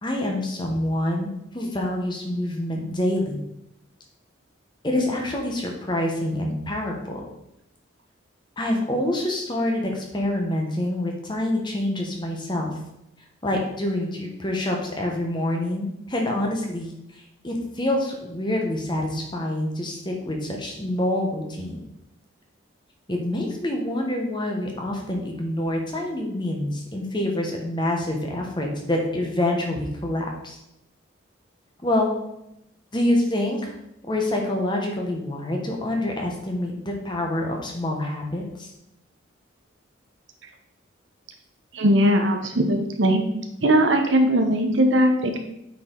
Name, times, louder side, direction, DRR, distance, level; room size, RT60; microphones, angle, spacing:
voice 1, 0.0-3.4 4.8-7.2 8.6-12.7 13.4-21.8 23.1-30.6 31.8-32.1 32.9-33.7 34.1-38.7, left 1 dB, 25° left, 1 dB, 1.2 m, -26 dB
voice 2, 41.7-43.2 43.6-45.4, right 1 dB, 65° right, 5 dB, 1.0 m, -19 dB
8.4 x 4.7 x 3.9 m, 0.83 s
head